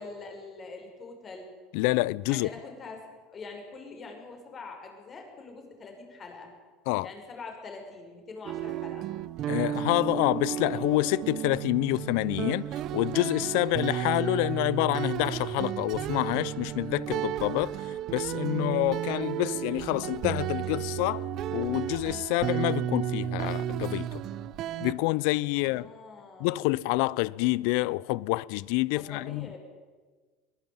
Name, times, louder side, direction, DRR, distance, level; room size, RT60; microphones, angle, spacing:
voice 1, 0.0-1.5 2.3-3.0 3.3-6.5 7.0-9.1 25.5-26.6 28.9-29.6, left 3 dB, 30° left, 6.6 m, -44 dB
voice 2, 1.7-2.5 6.9-7.1 9.5-12.7 12.9-24.2 24.8-25.9 26.4-29.5, left 20 dB, 75° left, 0.6 m, -27 dB
sound 1, 8.4-24.9, right 11 dB, 50° right, 0.9 m, -33 dB
22.0 x 17.5 x 9.3 m
supercardioid pair, 120°, 0 cm